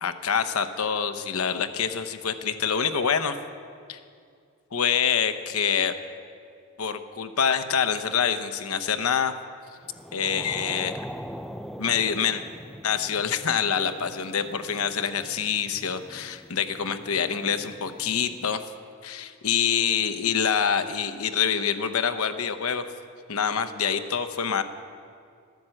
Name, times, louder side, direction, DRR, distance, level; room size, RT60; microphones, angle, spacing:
voice 1, 0.0-3.4 3.9-4.0 4.7-5.9 6.8-9.3 10.1-11.1 11.8-12.4 12.8-18.6 19.0-22.8 23.3-24.6, left 7 dB, 90° left, 9 dB, 0.8 m, -26 dB
sound 1, 9.8-18.6, equal, ahead, 0.4 m, -42 dB
13.0 x 10.5 x 7.8 m, 2.3 s
head